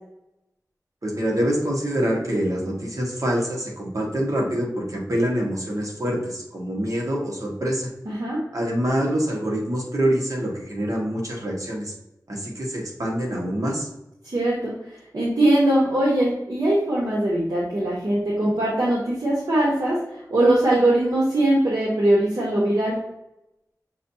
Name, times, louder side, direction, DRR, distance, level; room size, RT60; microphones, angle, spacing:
voice 1, 1.0-7.9 8.5-11.9 12.3-13.9, equal, 60° right, -2 dB, 1.4 m, -25 dB
voice 2, 8.1-8.4 14.2-14.7 15.1-20.0 20.3-23.0, right 1 dB, 80° right, -6 dB, 1.1 m, -21 dB
6.3 x 2.7 x 2.7 m, 0.86 s
wide cardioid pair, 50°, 7 cm